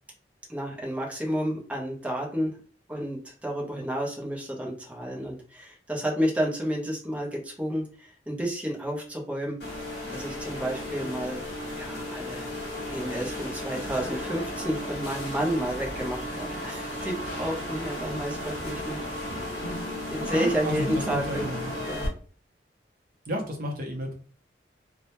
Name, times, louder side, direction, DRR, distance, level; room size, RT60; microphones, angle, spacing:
voice 1, 0.5-2.6 2.9-9.6 10.1-11.4 11.7-12.5 12.9-19.0 20.1-21.5 21.9-22.1, equal, 10° right, -2 dB, 0.5 m, -31 dB
sound 1, 9.6-22.1, left 1 dB, 70° left, 1.0 m, -34 dB
voice 2, 20.3-21.7 23.3-24.1, equal, 55° right, 2 dB, 0.6 m, -32 dB
2.1 x 2.1 x 2.8 m, 0.42 s
head